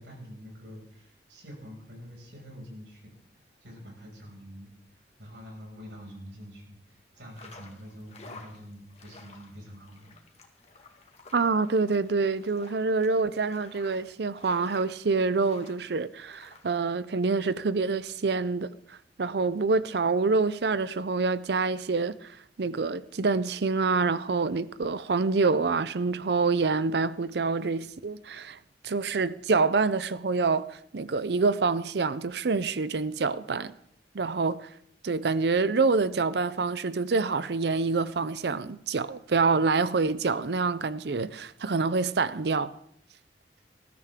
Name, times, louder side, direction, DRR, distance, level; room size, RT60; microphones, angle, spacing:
voice 1, 0.0-10.4, equal, 85° right, 6.1 m, -46 dB
sound 1, 7.2-16.7, left 3 dB, 35° left, 1.9 m, -52 dB
voice 2, 11.3-28.6 28.8-33.7 34.1-34.7 35.0-42.7, right 4 dB, 65° right, 0.5 m, -26 dB
20.0 x 13.0 x 3.7 m
head